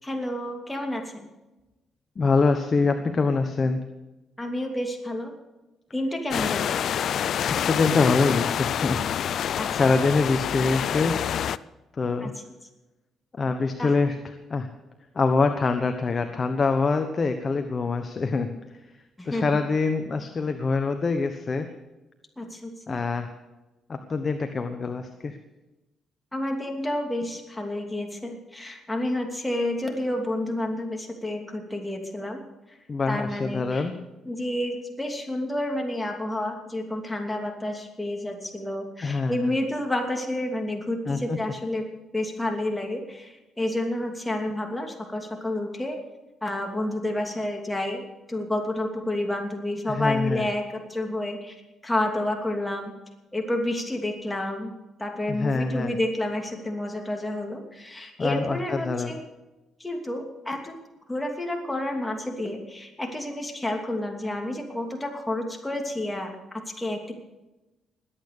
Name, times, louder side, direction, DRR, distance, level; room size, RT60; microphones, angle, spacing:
voice 1, 0.0-1.3 4.4-5.3 5.9-6.7 9.5-9.7 12.2-12.3 13.8-13.9 19.2-19.4 22.4-23.0 26.3-32.4 33.1-33.9 34.3-41.8 42.1-46.0 46.4-52.9 53.3-54.7 55.0-59.2 59.8-60.7 61.1-67.1, left 1 dB, 10° left, 2 dB, 2.9 m, -30 dB
voice 2, 2.2-3.8 7.5-9.0 9.7-11.2 11.9-12.3 13.4-14.1 14.5-14.7 15.1-18.5 19.2-21.7 22.9-23.3 23.9-25.4 32.9-33.9 39.0-39.5 41.1-41.4 49.9-50.5 55.3-55.9 58.2-59.1, left 4 dB, 35° left, 7 dB, 1.1 m, -24 dB
sound 1, 6.3-11.6, left 9 dB, 65° left, 0.4 m, -27 dB
20.5 x 8.8 x 6.7 m, 1.1 s
cardioid pair, 90°, 0 cm